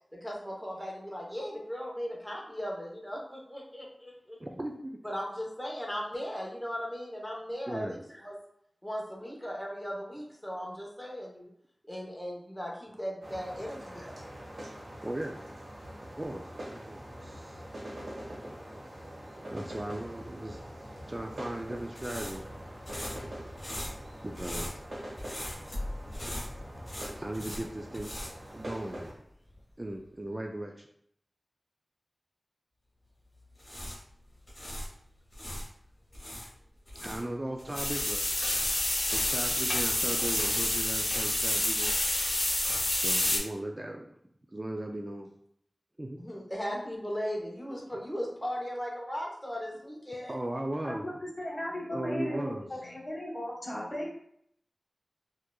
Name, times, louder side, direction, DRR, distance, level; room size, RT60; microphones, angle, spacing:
voice 1, 0.1-4.4 5.0-8.4 8.8-11.5 11.8-14.2 46.2-50.3, equal, 10° left, -2 dB, 1.0 m, -37 dB
voice 2, 4.4-5.0 7.7-8.0 15.0-15.4 16.2-16.4 16.7-17.6 19.5-20.6 21.1-22.4 24.2-24.8 27.2-28.2 28.5-29.1 29.8-30.9 37.0-38.2 39.1-41.9 43.0-44.2 44.5-45.3 46.0-46.2 50.3-51.1 51.9-52.6, right 1 dB, 30° right, 2 dB, 0.3 m, -37 dB
sound 1, 13.2-29.1, equal, 90° right, 1.3 m, -44 dB
sound 2, 21.1-29.2 29.4-29.6 33.4-35.7 36.1-38.9, left 1 dB, 60° left, 1.3 m, -41 dB
sound 3, 37.7-43.4, left 1 dB, 75° left, 0.9 m, -28 dB
voice 3, 50.8-54.1, left 1 dB, 35° left, -5 dB, 1.5 m, -36 dB
4.4 x 2.5 x 2.3 m, 0.69 s
wide cardioid pair, 60°, 0 cm